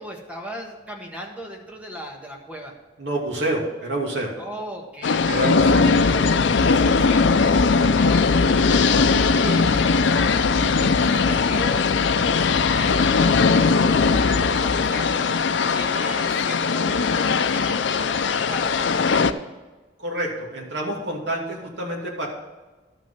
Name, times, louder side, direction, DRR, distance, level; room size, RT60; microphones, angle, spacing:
voice 1, 0.0-2.7 4.4-6.2 6.6-15.2 15.7-19.4, equal, 10° right, 0 dB, 1.5 m, -37 dB
voice 2, 3.0-4.3 5.3-5.9 20.0-22.3, right 1 dB, 80° right, -1 dB, 2.6 m, -27 dB
sound 1, 5.0-19.3, left 4 dB, 90° left, 0.5 m, -19 dB
12.5 x 6.2 x 5.7 m, 1.2 s
head